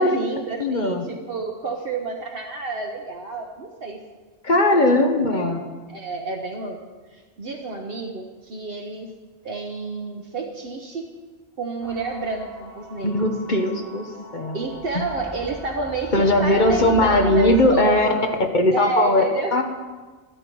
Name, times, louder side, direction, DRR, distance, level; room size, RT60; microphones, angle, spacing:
voice 1, 0.0-4.0 4.5-5.6 5.9-6.8 7.1-9.1 9.4-11.1 11.6-13.3 14.5-18.3 18.7-19.6, right 3 dB, 60° right, 1 dB, 1.1 m, -30 dB
voice 2, 0.6-1.0 4.4-5.6 13.0-14.1 14.3-14.6 16.1-18.1 18.5-19.2 19.5-19.6, left 1 dB, 45° left, 5 dB, 1.2 m, -19 dB
sound 1, 11.8-17.6, left 1 dB, 85° right, 2.7 m, -38 dB
12.5 x 12.5 x 4.6 m, 1.4 s
omnidirectional pair, 1.1 m